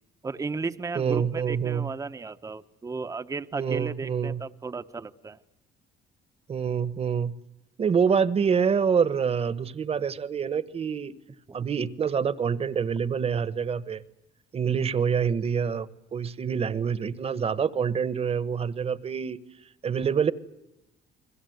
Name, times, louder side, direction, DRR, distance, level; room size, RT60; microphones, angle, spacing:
voice 1, 0.2-5.4, right 4 dB, 20° right, 9 dB, 0.9 m, -34 dB
voice 2, 0.9-1.9 3.5-4.4 6.5-7.3 7.8-11.1 11.5-14.0 14.5-19.4 19.8-20.3, right 6 dB, 35° right, 16 dB, 1.2 m, -26 dB
30.0 x 21.0 x 8.0 m, 0.89 s
cardioid pair, 110°, 17 cm